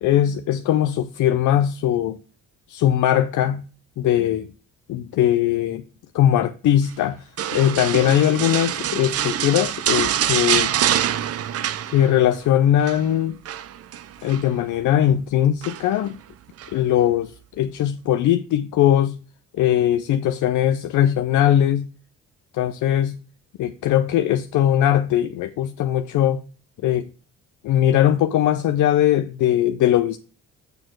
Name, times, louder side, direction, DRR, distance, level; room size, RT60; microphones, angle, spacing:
voice 1, 0.0-2.2 2.7-3.6 4.0-4.5 4.9-5.8 6.1-7.2 7.5-10.7 11.9-13.4 14.2-16.2 16.7-19.2 19.5-21.9 22.5-23.2 23.6-26.4 26.8-27.1 27.6-30.2, left 11 dB, 75° left, 0.6 m, -20 dB
sound 1, 7.4-12.4 12.6-13.0 13.5-14.5 15.6-16.1 16.6-16.7, right 10 dB, 50° right, 0.6 m, -25 dB
6.7 x 6.5 x 4.5 m
cardioid pair, 90°, 30 cm